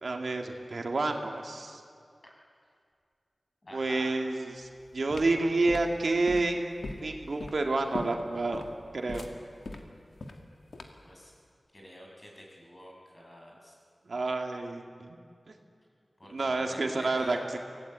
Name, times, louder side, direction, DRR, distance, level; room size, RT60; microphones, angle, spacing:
voice 1, 0.0-1.8 3.7-4.7 4.9-6.7 7.0-8.6 8.9-9.3 14.1-15.2 16.3-17.4, right 2 dB, 70° right, 3 dB, 2.1 m, -29 dB
voice 2, 3.6-4.1 11.0-11.3 11.7-13.7 16.2-17.4, equal, 35° left, -1 dB, 6.5 m, -47 dB
sound 1, 4.6-11.1, left 2 dB, 80° left, 2.0 m, -41 dB
24.5 x 17.5 x 9.0 m, 2.2 s
wide cardioid pair, 65°, 0 cm